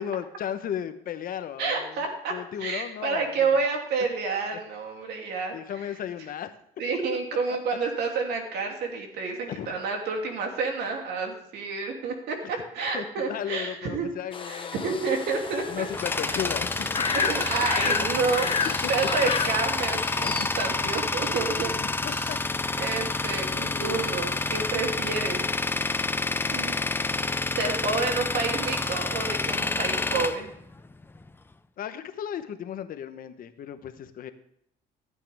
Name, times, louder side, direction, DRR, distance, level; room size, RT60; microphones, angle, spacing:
voice 1, 0.0-2.0 2.3-3.6 5.5-6.5 9.5-9.7 12.4-12.5 12.9-15.1 15.7-16.9 18.8-18.9 20.2-20.4 21.8-23.1 23.4-24.1 31.8-34.3, left 9 dB, 55° left, 10 dB, 1.0 m, -35 dB
voice 2, 1.6-5.9 6.8-14.1 14.4-15.9 16.2-16.4 17.1-18.5 18.9-22.4 22.8-25.4 26.5-26.8 27.6-30.5, right 4 dB, 75° right, 2 dB, 2.8 m, -29 dB
sound 1, 14.3-20.5, left 5 dB, 30° left, 1.0 m, -31 dB
Tools, 15.5-31.3, left 3 dB, 15° left, 0.5 m, -28 dB
15.0 x 8.6 x 3.5 m, 0.73 s
cardioid pair, 110°, 17 cm